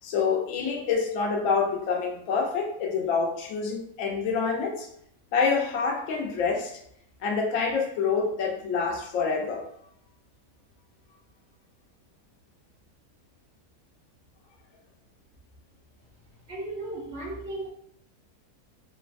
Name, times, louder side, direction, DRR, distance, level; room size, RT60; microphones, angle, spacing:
voice 1, 0.0-4.9 5.3-6.7 7.2-9.6, left 5 dB, 65° left, 0 dB, 0.9 m, -27 dB
voice 2, 16.5-17.7, right 2 dB, 60° right, -5 dB, 0.7 m, -35 dB
3.2 x 2.1 x 2.4 m, 0.70 s
omnidirectional pair, 1.7 m